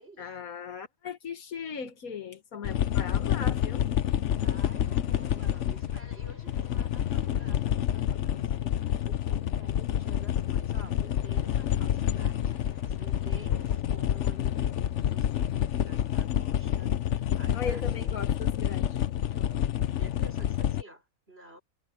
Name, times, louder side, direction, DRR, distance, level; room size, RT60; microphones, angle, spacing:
voice 1, 0.2-3.9 17.5-19.0, left 6 dB, 90° left, 1.8 m, -38 dB
sound 1, 1.9-2.3 3.9-9.0 10.8-13.8, left 1 dB, 45° left, 8.0 m, -57 dB
sound 2, 2.6-20.8, left 10 dB, 60° left, 1.0 m, -28 dB
voice 2, 4.4-18.1 19.3-21.6, right 1 dB, 45° right, 5.0 m, -51 dB
omnidirectional pair, 1.4 m